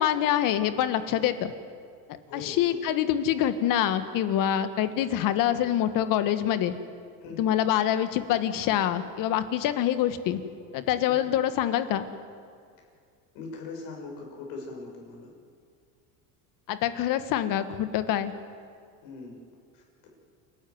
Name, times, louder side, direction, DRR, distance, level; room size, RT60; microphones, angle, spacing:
voice 1, 0.0-1.5 2.3-6.7 7.4-10.4 10.7-12.0 16.7-18.3, left 11 dB, 55° left, 10 dB, 1.7 m, -25 dB
voice 2, 7.2-7.5 11.1-11.3 13.3-15.3 19.0-19.4 19.7-20.1, left 3 dB, 70° left, 1 dB, 6.1 m, -41 dB
29.5 x 13.5 x 9.5 m, 2.2 s
cardioid pair, 135°, 39 cm